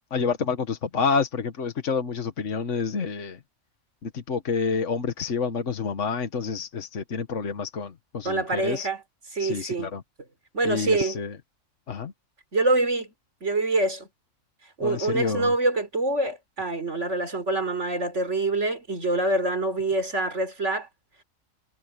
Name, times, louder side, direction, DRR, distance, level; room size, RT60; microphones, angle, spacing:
voice 1, 0.1-3.4 4.0-8.9 9.4-10.0 10.6-11.4 11.9-12.1 14.8-15.5, left 5 dB, 75° left, 1.7 m, -28 dB
voice 2, 8.2-9.0 9.3-9.9 10.5-11.2 12.5-13.1 13.4-14.1 14.8-20.9, right 2 dB, 70° right, 4.3 m, -25 dB
omnidirectional pair, 1.3 m